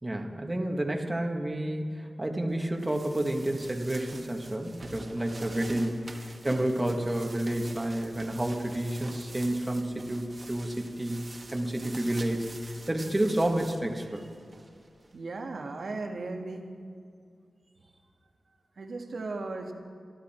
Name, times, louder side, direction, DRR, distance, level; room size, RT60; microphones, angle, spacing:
voice 1, 0.0-11.2 11.5-14.3, right 1 dB, 20° right, 2 dB, 1.7 m, -30 dB
sound 1, 2.6-15.1, right 2 dB, 40° right, 1.7 m, -47 dB
voice 2, 15.1-16.7 18.8-19.7, right 3 dB, 70° right, 3 dB, 1.7 m, -36 dB
27.0 x 11.5 x 4.4 m, 2.3 s
wide cardioid pair, 75°, 0 cm